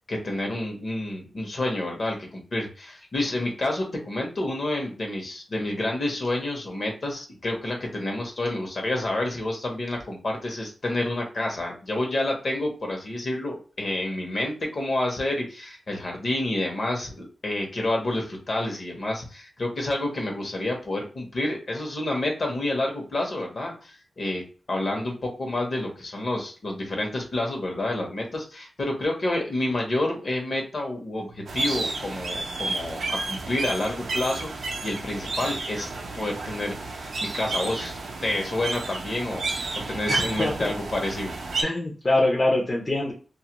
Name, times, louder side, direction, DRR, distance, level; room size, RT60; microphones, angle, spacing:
voice 1, 0.1-24.4 24.7-39.4 39.9-41.3, left 1 dB, 50° left, 1 dB, 0.9 m, -29 dB
sound 1, 31.5-41.6, right 3 dB, 75° right, 0.5 m, -31 dB
voice 2, 40.1-40.7 41.6-43.1, left 2 dB, 30° left, -3 dB, 0.5 m, -24 dB
2.3 x 2.1 x 2.9 m, 0.37 s
wide cardioid pair, 105°, 0 cm